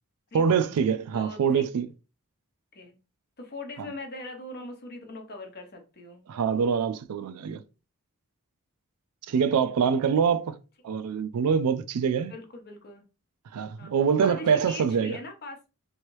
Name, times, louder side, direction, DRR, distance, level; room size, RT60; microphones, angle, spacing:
voice 1, 0.3-1.9 6.3-7.6 9.3-10.6 10.8-12.3 13.5-15.2, right 6 dB, 80° right, 0.4 m, -24 dB
voice 2, 1.1-1.7 2.7-3.0 3.4-6.2 9.3-10.0 12.2-13.0 13.8-13.9 14.2-15.7, left 2 dB, 45° left, 0.8 m, -41 dB
3.1 x 2.6 x 3.0 m
head